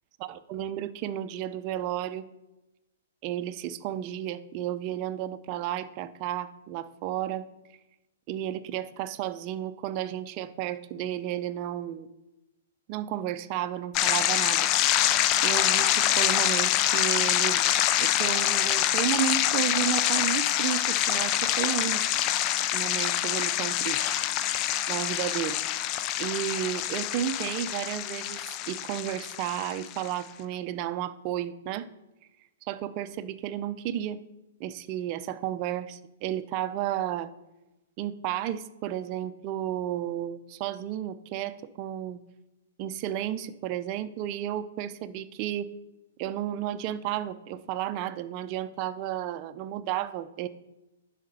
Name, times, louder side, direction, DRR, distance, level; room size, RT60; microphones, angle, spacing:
voice 1, 0.2-2.3 3.2-7.5 8.3-12.1 12.9-17.6 18.0-22.0 22.7-24.2 24.9-25.6 26.2-31.9 32.6-34.2 34.6-37.3 38.0-42.2 42.8-45.7 46.2-50.5, right 11 dB, 40° right, 11 dB, 0.6 m, -32 dB
sound 1, 13.9-30.1, left 12 dB, 35° left, 0.5 m, -26 dB
11.0 x 5.0 x 5.5 m, 0.98 s
hypercardioid pair, 135°, 0 cm